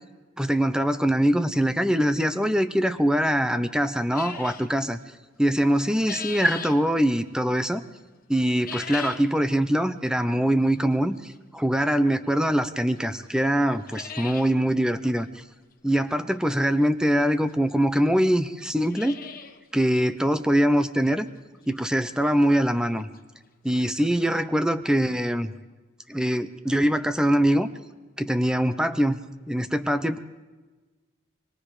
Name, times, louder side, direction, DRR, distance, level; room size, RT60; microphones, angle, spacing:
voice 1, 0.4-5.0 5.4-7.8 8.3-15.3 15.8-19.2 19.7-21.3 21.7-23.1 23.6-25.5 26.1-27.7 28.2-29.2 29.5-30.2, equal, 5° right, 11 dB, 0.8 m, -23 dB
sound 1, 4.1-4.7 5.6-6.8 8.5-9.3 9.7-9.8 10.6-10.7 12.4-12.5 13.0-13.1 13.3-13.4 13.7-14.5 14.9-15.0 15.2-15.3 16.8-16.9 17.7-17.8 18.0-18.1 18.6-19.6 19.9-20.0 20.5-20.6 21.1-21.2 22.9-23.0 23.1-23.2 23.7-23.8, left 7 dB, 45° left, 1.3 m, -38 dB
23.5 x 22.0 x 5.0 m, 1.3 s
head